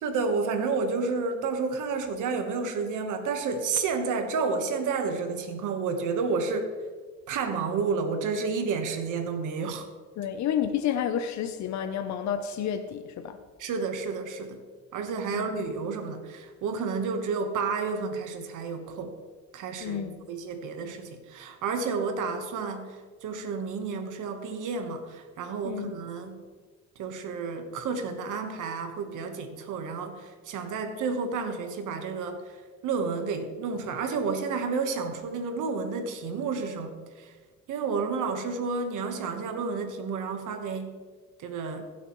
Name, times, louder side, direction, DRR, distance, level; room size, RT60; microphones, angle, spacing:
voice 1, 0.0-6.7 7.3-9.9 13.6-14.6 14.9-19.1 19.5-23.0 23.2-26.4 27.0-32.4 32.8-37.3 37.7-41.0 41.4-41.8, right 4 dB, 85° right, 7 dB, 1.3 m, -31 dB
voice 2, 10.2-13.4 15.3-15.5 19.8-20.3 25.6-25.9, left 9 dB, 65° left, 7 dB, 0.7 m, -30 dB
16.0 x 8.0 x 3.1 m, 1.5 s
cardioid pair, 90°, 30 cm